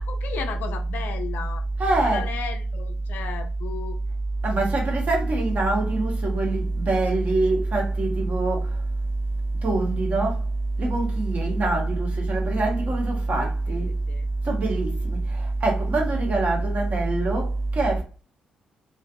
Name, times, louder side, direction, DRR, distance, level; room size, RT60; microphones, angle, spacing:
voice 1, 0.0-1.6 2.0-4.0 4.5-4.7 12.8-13.0 13.4-14.3, left 7 dB, 55° left, 0.3 m, -36 dB
voice 2, 1.8-2.3 4.4-8.6 9.6-10.3 10.8-13.9 14.5-15.2 15.6-17.5 17.8-18.0, right 2 dB, 40° right, 0.9 m, -23 dB
2.5 x 2.4 x 2.4 m
figure-of-eight pair, 40°, 4 cm